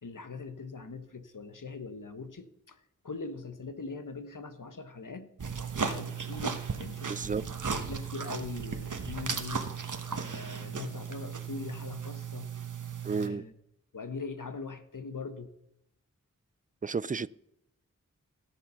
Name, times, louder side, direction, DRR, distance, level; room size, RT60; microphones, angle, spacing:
voice 1, 0.0-2.8 3.0-5.3 5.8-7.1 7.6-9.6 10.1-12.5 13.2-13.5 13.9-15.5, left 4 dB, 75° left, 1.2 m, -41 dB
sound 1, 5.4-13.3, right 6 dB, 70° right, 1.2 m, -36 dB
voice 2, 7.1-7.4 13.0-13.4 16.8-17.3, right 5 dB, 25° right, 0.4 m, -32 dB
16.5 x 7.0 x 5.7 m
wide cardioid pair, 45°, 32 cm